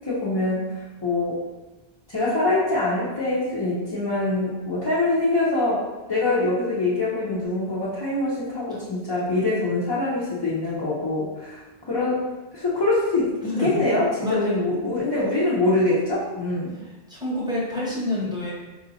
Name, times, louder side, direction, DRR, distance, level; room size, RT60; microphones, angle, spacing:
voice 1, 0.0-1.4 2.1-11.6 11.9-12.2 12.5-16.7, left 2 dB, 30° left, -9 dB, 0.6 m, -24 dB
voice 2, 13.4-13.9 14.2-14.6 17.1-18.5, left 1 dB, 5° right, -6 dB, 0.9 m, -27 dB
4.6 x 2.9 x 2.6 m, 1.2 s
omnidirectional pair, 1.1 m